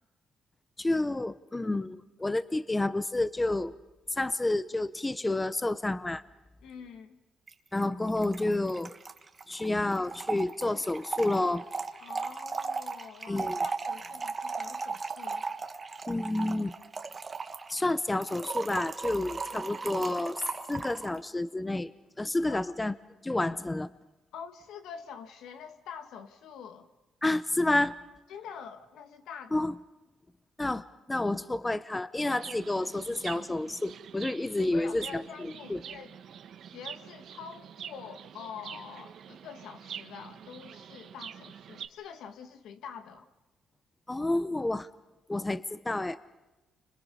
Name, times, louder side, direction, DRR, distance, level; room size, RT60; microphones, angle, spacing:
voice 1, 0.8-3.7 4.1-6.2 7.7-8.9 9.5-11.6 13.3-13.6 16.1-16.7 17.7-20.4 20.7-21.9 22.2-22.9 23.2-23.9 27.2-28.0 29.5-29.7 30.6-35.8 44.1-44.9 45.3-46.2, left 2 dB, 15° left, 14 dB, 0.8 m, -30 dB
voice 2, 6.6-7.2 12.0-15.5 22.5-22.6 24.3-26.9 28.3-29.7 34.6-36.1 36.7-43.3, left 7 dB, 80° left, 7 dB, 1.8 m, -46 dB
Trickle dribble / Fill (with liquid), 7.5-7.6 7.8-7.9 8.1-21.2, right 4 dB, 30° right, 1.5 m, -37 dB
Chirp tweet, 32.2-41.9, right 8 dB, 65° right, 1.2 m, -45 dB
30.0 x 26.0 x 5.5 m, 1.1 s
cardioid pair, 90°, 0 cm